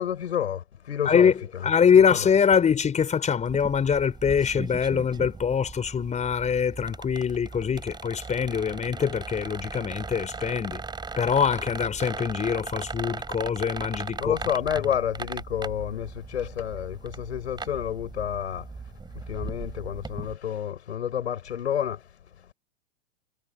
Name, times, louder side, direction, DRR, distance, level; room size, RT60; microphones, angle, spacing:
voice 1, 0.0-1.7 1.9-2.3 14.2-18.7 19.1-22.5, left 9 dB, 80° left, 7.9 m, -30 dB
voice 2, 1.6-10.8 11.2-14.3, left 7 dB, 20° left, 5.6 m, -23 dB
sound 1, 3.4-20.3, right 4 dB, 15° right, 5.5 m, -38 dB
hypercardioid pair, 105°, 33 cm